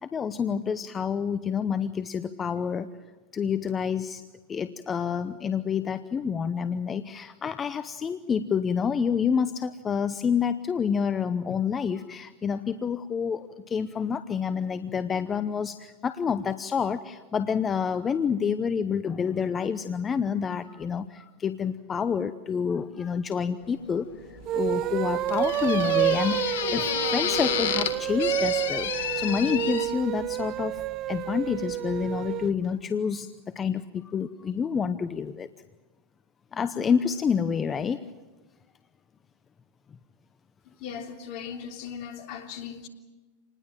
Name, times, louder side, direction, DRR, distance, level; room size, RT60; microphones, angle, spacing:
voice 1, 0.0-2.9 3.3-4.2 4.5-30.8 31.1-35.5 36.5-38.0, left 6 dB, 25° left, 0.9 m, -28 dB
sound 1, 23.6-29.9, left 9 dB, 70° left, 2.1 m, -31 dB
sound 2, 24.4-32.5, right 13 dB, 45° right, 0.8 m, -29 dB
voice 2, 40.8-42.9, left 7 dB, 55° left, 3.2 m, -38 dB
27.5 x 20.0 x 7.5 m
hypercardioid pair, 105°, 0 cm